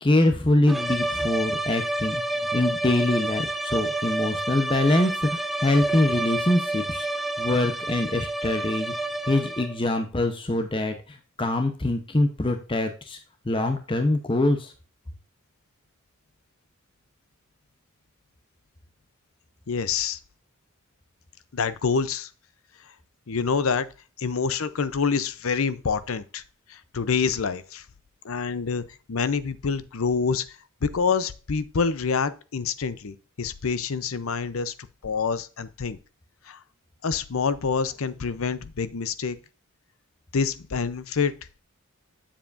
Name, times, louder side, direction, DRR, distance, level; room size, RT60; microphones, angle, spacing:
voice 1, 0.0-8.9 9.3-13.2 13.4-14.7, left 1 dB, 25° left, 0.8 m, -24 dB
sound 1, 0.7-9.9, right 2 dB, ahead, 0.4 m, -29 dB
voice 2, 19.7-20.2 21.5-22.3 23.3-23.9 24.2-26.4 26.7-27.8 28.2-28.8 29.1-30.4 30.8-34.7 35.0-36.0 36.5-36.6 37.0-39.4 40.3-41.3, left 5 dB, 75° left, 0.6 m, -26 dB
7.6 x 7.2 x 2.5 m
head